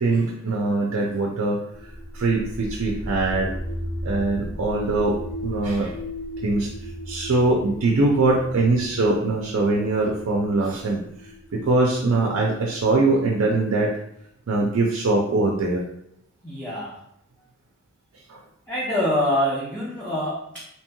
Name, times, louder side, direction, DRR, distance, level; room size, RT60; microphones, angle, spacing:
voice 1, 0.0-3.6 4.0-5.2 5.4-5.9 6.4-13.9 14.5-15.8 18.1-18.4, right 2 dB, 75° right, -1 dB, 0.5 m, -22 dB
sound 1, 1.7-13.5, equal, 75° left, 1.4 m, -36 dB
voice 2, 16.4-17.0 18.7-20.6, left 1 dB, 5° left, -8 dB, 0.6 m, -25 dB
2.9 x 2.8 x 2.2 m, 0.74 s
head